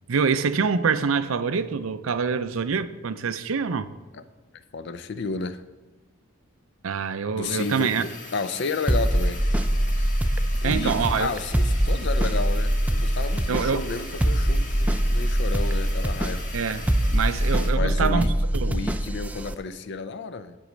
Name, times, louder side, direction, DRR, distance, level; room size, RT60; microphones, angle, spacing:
voice 1, 0.1-3.9 6.8-8.0 10.6-11.3 13.5-13.8 16.5-18.3 18.5-18.8, right 5 dB, 75° right, 0.5 m, -25 dB
voice 2, 4.7-5.6 7.3-9.4 10.6-16.5 17.7-18.3 18.7-20.6, left 4 dB, 60° left, 0.5 m, -32 dB
sound 1, 7.4-17.7, left 3 dB, 40° left, 1.7 m, -41 dB
sound 2, 8.9-19.5, right 1 dB, 5° right, 0.4 m, -23 dB
9.9 x 5.5 x 5.1 m
head